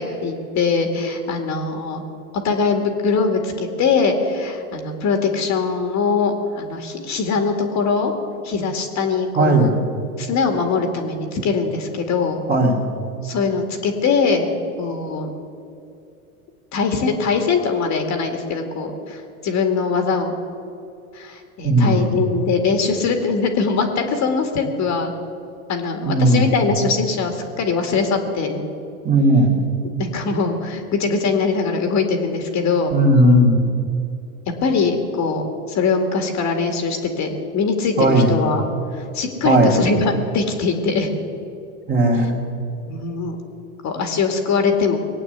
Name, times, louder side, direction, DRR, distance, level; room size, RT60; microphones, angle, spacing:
voice 1, 0.0-2.0 2.4-8.1 8.4-9.7 10.2-12.4 13.2-14.5 14.8-15.3 16.7-20.3 21.1-25.1 25.7-28.6 30.0-32.9 34.6-38.6 38.9-41.1 42.1-42.2 42.9-43.4 43.8-45.0, left 4 dB, 40° left, 5 dB, 2.1 m, -22 dB
voice 2, 9.4-9.7 12.5-12.8 21.6-22.1 26.0-26.5 29.0-29.5 32.9-33.6 38.0-38.3 39.4-39.8 41.9-42.4, right 1 dB, 20° right, 0 dB, 2.7 m, -16 dB
20.0 x 8.7 x 8.1 m, 2.6 s
hypercardioid pair, 105°, 43 cm